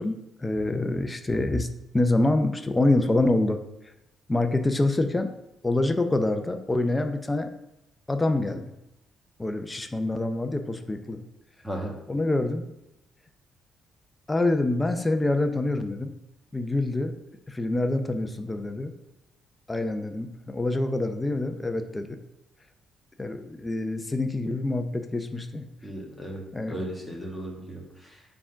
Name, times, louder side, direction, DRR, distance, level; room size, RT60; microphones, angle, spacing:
voice 1, 0.0-1.7 1.9-3.6 4.3-5.3 5.6-7.5 8.1-8.7 9.4-11.2 12.1-12.7 14.3-16.1 16.5-17.1 17.5-18.9 19.7-22.2 23.2-25.7 26.5-26.8, left 2 dB, 15° left, 6 dB, 0.5 m, -26 dB
voice 2, 25.8-28.2, right 1 dB, ahead, -2 dB, 1.6 m, -36 dB
4.7 x 3.7 x 5.6 m, 0.88 s
cardioid pair, 90°, 0 cm